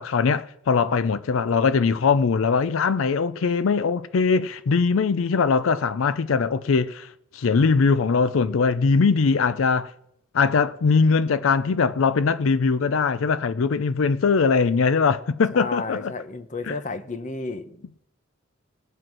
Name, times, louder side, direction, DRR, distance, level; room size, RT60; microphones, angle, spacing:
voice 1, 0.0-7.1 7.3-9.9 10.3-16.1 16.7-16.8, left 5 dB, 70° left, 0.5 m, -21 dB
voice 2, 15.5-18.0, left 3 dB, 35° left, 0.9 m, -32 dB
18.5 x 7.7 x 6.1 m
head